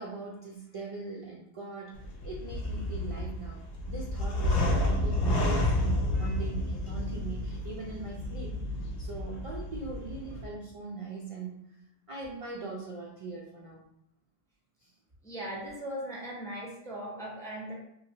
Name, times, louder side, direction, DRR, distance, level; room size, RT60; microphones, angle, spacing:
voice 1, 0.0-1.9 2.2-8.6 9.0-11.6 12.1-13.8 14.8-14.9, right 4 dB, 55° right, -2 dB, 0.3 m, -41 dB
sound 1, 1.9-10.5, left 1 dB, 80° left, 0.9 m, -30 dB
voice 2, 15.2-17.7, equal, 5° left, -4 dB, 0.5 m, -38 dB
3.0 x 2.5 x 2.7 m, 0.78 s
omnidirectional pair, 1.1 m